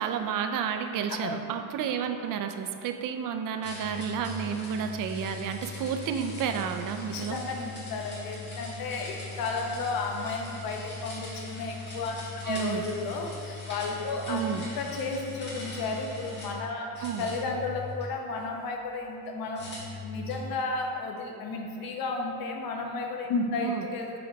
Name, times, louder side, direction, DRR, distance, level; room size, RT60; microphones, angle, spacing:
voice 1, 0.0-7.4 12.4-12.9 14.3-14.6 17.0-17.3 23.6-23.8, right 7 dB, 60° right, 7 dB, 0.5 m, -31 dB
sound 1, 3.6-16.6 16.9-18.4 19.5-20.5, left 3 dB, 30° left, 1.4 m, -40 dB
voice 2, 7.1-12.2 12.4-19.7 20.0-24.2, left 3 dB, 70° left, 1 dB, 0.9 m, -33 dB
5.0 x 4.5 x 5.1 m, 2.6 s
cardioid pair, 160°, 37 cm